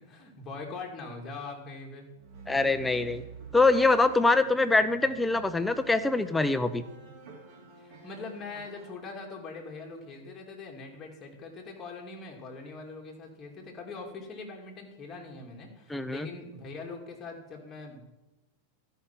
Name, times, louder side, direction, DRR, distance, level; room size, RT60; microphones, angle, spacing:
voice 1, 0.0-2.1 7.8-18.0, left 3 dB, 25° left, 0 dB, 2.3 m, -42 dB
sound 1, 2.1-8.9, right 4 dB, 50° right, 2.6 m, -48 dB
voice 2, 2.5-3.2 3.5-6.8 15.9-16.3, left 3 dB, 5° left, 11 dB, 0.5 m, -24 dB
12.5 x 5.6 x 5.8 m, 1.0 s
supercardioid pair, 135°, 0 cm